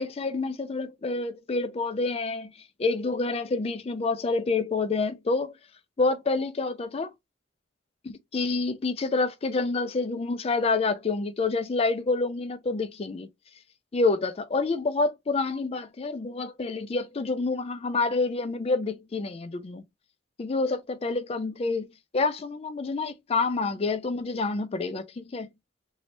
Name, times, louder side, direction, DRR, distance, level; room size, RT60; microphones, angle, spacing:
voice 1, 0.0-2.5 2.8-5.5 6.0-7.1 8.0-13.3 13.9-19.8 20.4-21.9 22.1-25.5, left 3 dB, 30° left, 0.4 m, -28 dB
3.2 x 2.7 x 2.7 m
head